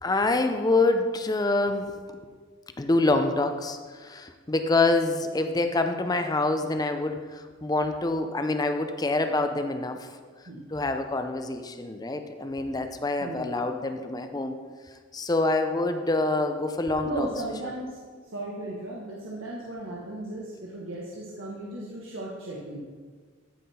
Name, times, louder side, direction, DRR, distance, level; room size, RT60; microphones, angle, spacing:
voice 1, 0.0-2.2 2.8-10.1 10.7-14.6 15.1-17.3, left 2 dB, 20° left, 7 dB, 0.5 m, -26 dB
voice 2, 17.0-22.8, right 1 dB, 85° right, -4 dB, 1.4 m, -36 dB
13.5 x 5.7 x 4.3 m, 1.5 s
head